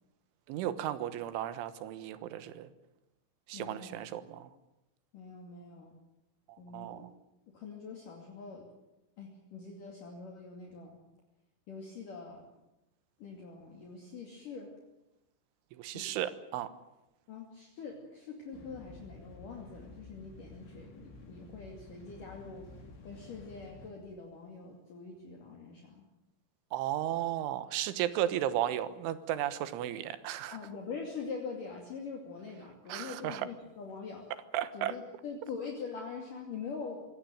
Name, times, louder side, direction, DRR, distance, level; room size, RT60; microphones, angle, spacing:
voice 1, 0.5-2.7 3.5-4.5 6.5-7.1 15.7-16.7 26.7-30.6 32.9-33.5 34.5-34.9, right 12 dB, 85° right, 13 dB, 3.7 m, -34 dB
voice 2, 3.5-4.0 5.1-5.9 6.6-7.1 7.5-8.7 9.2-11.0 11.7-12.4 13.2-14.7 15.9-16.1 17.3-22.7 23.0-26.0 30.5-34.2 34.7-37.0, left 5 dB, 50° left, 1 dB, 3.7 m, -44 dB
sound 1, 18.5-23.9, left 2 dB, 80° left, 6.4 m, -52 dB
24.5 x 17.5 x 9.2 m, 0.94 s
omnidirectional pair, 5.4 m